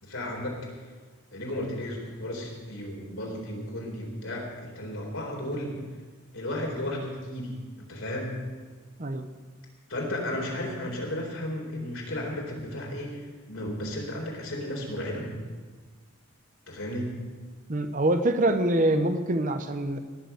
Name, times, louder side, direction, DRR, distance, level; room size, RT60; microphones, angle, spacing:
voice 1, 0.0-0.8 1.3-5.8 6.3-7.5 7.8-8.4 9.9-15.3 16.7-17.1, left 1 dB, 70° left, -1 dB, 4.1 m, -34 dB
voice 2, 17.7-20.0, right 1 dB, 35° right, 9 dB, 0.9 m, -25 dB
18.5 x 7.0 x 8.2 m, 1.4 s
head